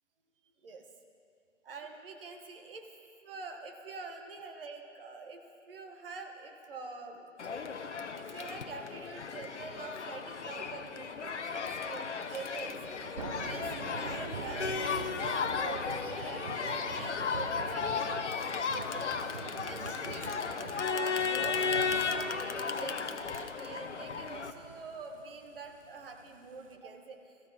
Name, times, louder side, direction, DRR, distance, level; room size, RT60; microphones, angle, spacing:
voice 1, 1.6-2.9 3.2-5.4 5.7-7.6 8.1-12.7 13.4-19.1 19.6-27.3, right 4 dB, 45° right, 3 dB, 1.6 m, -46 dB
Crowd, 7.4-24.5, left 5 dB, 65° left, 0.9 m, -35 dB
Thunder / Rain, 12.8-26.7, right 5 dB, 25° right, 0.6 m, -46 dB
20.0 x 14.5 x 4.2 m, 2.4 s
figure-of-eight pair, 140°, 38 cm